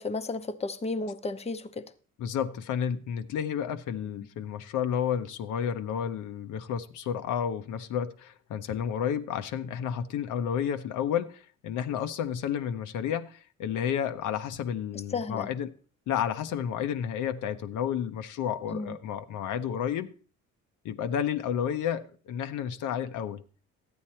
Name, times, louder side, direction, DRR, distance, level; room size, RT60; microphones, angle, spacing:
voice 1, 0.0-1.9 15.1-15.5 18.7-19.0, left 3 dB, 20° left, 0.8 m, -33 dB
voice 2, 2.2-15.7 16.1-20.1 20.8-23.4, left 8 dB, 80° left, 0.8 m, -31 dB
12.5 x 8.7 x 4.3 m
cardioid pair, 90°, 30 cm